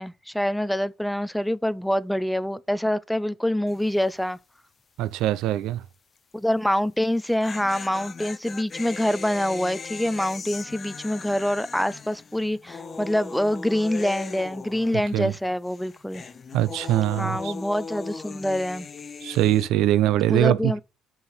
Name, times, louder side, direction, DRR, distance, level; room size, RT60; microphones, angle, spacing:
voice 1, 0.0-4.4 6.3-16.2 17.2-18.9 20.3-20.8, left 1 dB, ahead, 0.4 m, -25 dB
sound 1, 3.7-4.0 4.3-4.4 7.0-15.4 15.7-19.7, left 5 dB, 30° left, 0.7 m, -39 dB
voice 2, 5.0-5.8 15.1-15.3 16.5-17.5 19.2-20.7, right 13 dB, 80° right, 0.6 m, -22 dB
5.6 x 4.8 x 5.7 m
cardioid pair, 110°, 0 cm